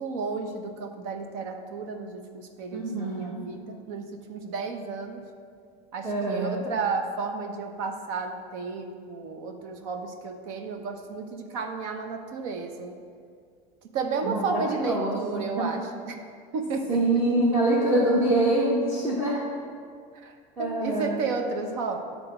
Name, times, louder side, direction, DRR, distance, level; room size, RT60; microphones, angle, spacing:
voice 1, 0.0-5.2 5.9-12.9 13.9-16.1 16.5-17.0 20.1-22.0, right 4 dB, 70° right, 5 dB, 0.9 m, -32 dB
voice 2, 2.7-3.5 6.0-6.7 14.2-15.8 16.9-19.4 20.6-21.2, right 1 dB, 15° right, -5 dB, 0.9 m, -25 dB
10.5 x 3.8 x 6.0 m, 2.2 s
cardioid pair, 170°, 17 cm